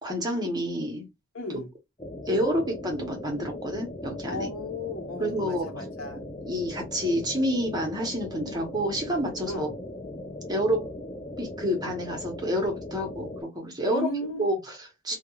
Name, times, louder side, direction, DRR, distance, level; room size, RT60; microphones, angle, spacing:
voice 1, 0.0-1.1 2.3-4.5 5.2-5.9 6.4-9.7 10.5-10.9 11.4-13.3 13.5-14.1 14.4-15.2, equal, 20° right, 0.9 m, -28 dB
voice 2, 1.3-1.7 4.3-6.2 9.5-9.7 13.8-14.5, left 2 dB, 80° left, 1.0 m, -34 dB
sound 1, 2.0-13.4, left 1 dB, 20° left, 0.4 m, -39 dB
2.3 x 2.3 x 2.9 m
head